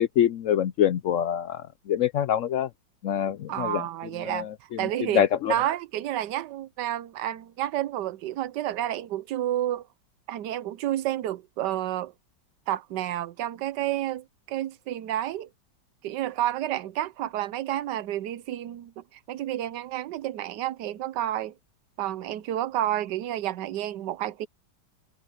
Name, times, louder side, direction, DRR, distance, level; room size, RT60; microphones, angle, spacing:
voice 1, 0.0-2.7 3.0-3.8 4.3-4.5 5.1-5.5, left 10 dB, 75° left, 0.7 m, -25 dB
voice 2, 3.5-4.5 4.8-9.9 10.3-12.1 12.7-15.5 16.0-21.5 22.0-24.5, right 13 dB, 75° right, 1.3 m, -30 dB
omnidirectional pair, 1.9 m